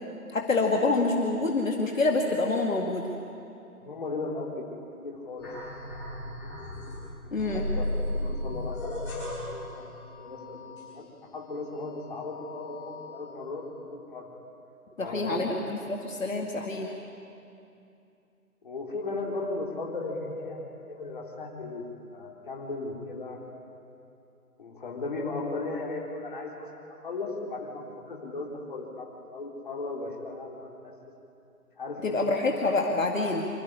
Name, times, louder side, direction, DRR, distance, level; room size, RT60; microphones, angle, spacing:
voice 1, 0.3-3.1 7.3-7.7 15.0-16.9 32.0-33.5, left 3 dB, 60° left, 1 dB, 2.1 m, -27 dB
voice 2, 3.8-4.7 5.0-5.5 7.2-7.9 8.1-9.9 10.2-11.0 11.3-14.3 15.0-15.5 16.6-16.7 18.6-21.8 22.1-23.4 24.6-30.9 31.8-32.4, left 3 dB, 35° left, -1 dB, 3.5 m, -36 dB
sound 1, 5.4-7.0 7.4-11.4 11.7-13.2, left 1 dB, 20° left, 8.0 m, -36 dB
26.0 x 14.0 x 10.0 m, 2.7 s
figure-of-eight pair, 170°, 45 cm